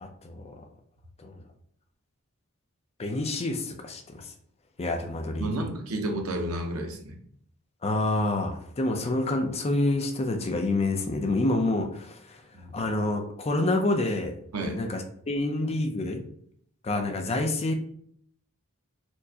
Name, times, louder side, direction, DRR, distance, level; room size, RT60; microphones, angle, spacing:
voice 1, 0.0-0.5 1.2-1.4 3.0-4.2 4.8-5.5 7.8-12.1 12.7-14.3 14.8-16.2 16.8-17.7, left 2 dB, 30° left, 5 dB, 0.4 m, -27 dB
voice 2, 5.4-7.2 12.5-12.7 14.5-14.8, right 1 dB, 90° right, 3 dB, 0.7 m, -31 dB
4.5 x 2.1 x 2.7 m, 0.64 s
head